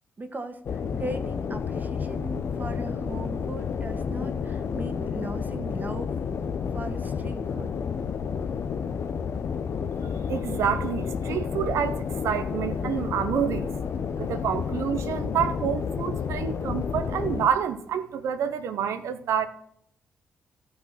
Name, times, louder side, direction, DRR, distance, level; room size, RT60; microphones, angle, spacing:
voice 1, 0.2-6.1 6.7-7.7, right 2 dB, 35° right, 1.5 m, -38 dB
sound 1, 0.6-17.5, left 6 dB, 60° left, 0.8 m, -30 dB
voice 2, 10.0-13.8 14.2-19.5, right 8 dB, 75° right, 0.7 m, -28 dB
13.0 x 6.0 x 5.9 m
supercardioid pair, 50°, 5 cm